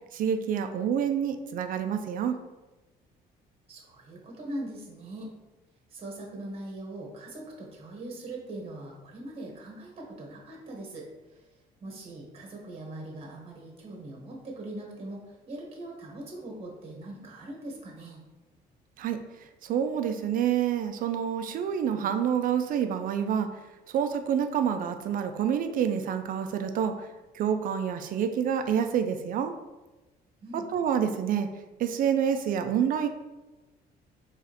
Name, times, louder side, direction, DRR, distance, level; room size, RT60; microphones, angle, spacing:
voice 1, 0.1-2.4 19.0-19.2 19.6-23.5 23.9-27.1 27.3-29.5 30.5-31.5 31.8-33.1, right 8 dB, 55° right, 8 dB, 0.5 m, -27 dB
voice 2, 3.7-5.3 5.9-11.1 11.8-15.2 15.5-18.2 30.4-30.7, right 1 dB, 35° right, -1 dB, 1.1 m, -41 dB
4.9 x 3.2 x 2.9 m, 1.1 s
cardioid pair, 110°, 17 cm